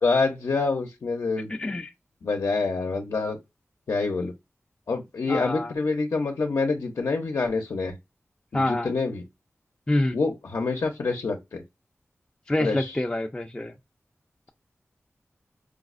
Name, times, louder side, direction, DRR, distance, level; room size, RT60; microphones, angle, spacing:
voice 1, 0.0-1.5 2.2-3.4 3.9-4.3 4.9-8.0 8.5-9.2 10.1-11.6 12.6-13.0, left 4 dB, 85° left, 0.6 m, -26 dB
voice 2, 1.5-1.9 5.3-5.7 8.5-8.9 9.9-10.2 12.5-13.7, left 1 dB, 20° left, 0.3 m, -26 dB
4.8 x 2.0 x 2.4 m
wide cardioid pair, 90°, 5 cm